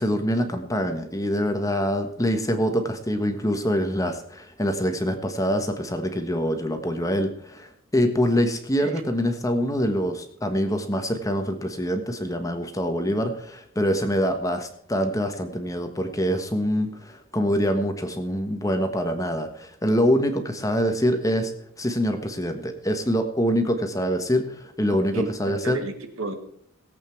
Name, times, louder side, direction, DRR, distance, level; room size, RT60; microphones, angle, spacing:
voice 1, 0.0-21.5 21.8-25.8, equal, 15° left, 1.4 m, -25 dB
voice 2, 24.9-26.3, right 2 dB, 80° right, 2.0 m, -33 dB
18.0 x 8.4 x 4.6 m
head